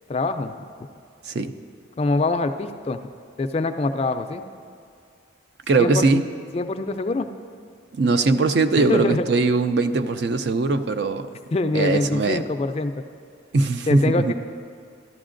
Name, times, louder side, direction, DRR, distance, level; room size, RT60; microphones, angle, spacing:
voice 1, 0.1-0.6 2.0-3.1 3.4-4.4 5.8-6.1 6.5-7.3 8.9-9.3 11.5-12.9 13.9-14.3, left 3 dB, 30° left, 8 dB, 0.3 m, -24 dB
voice 2, 5.7-6.2 7.9-11.3 11.7-12.4 13.5-14.3, right 3 dB, 55° right, 9 dB, 0.4 m, -20 dB
13.5 x 12.0 x 2.5 m, 2.4 s
head